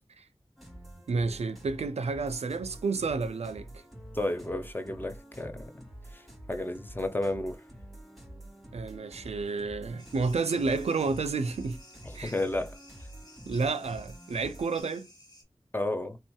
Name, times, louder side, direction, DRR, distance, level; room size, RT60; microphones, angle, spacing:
sound 1, 0.6-14.8, right 1 dB, ahead, 1.2 m, -48 dB
voice 1, 1.1-3.8 8.7-11.8 12.1-12.3 13.5-15.1, right 4 dB, 80° right, 0.4 m, -30 dB
voice 2, 4.1-5.8 6.1-7.6 12.0-12.8 15.7-16.2, left 1 dB, 20° left, 0.5 m, -32 dB
sound 2, 10.0-15.4, left 1 dB, 40° left, 1.3 m, -54 dB
3.5 x 2.7 x 2.2 m
wide cardioid pair, 65°, 11 cm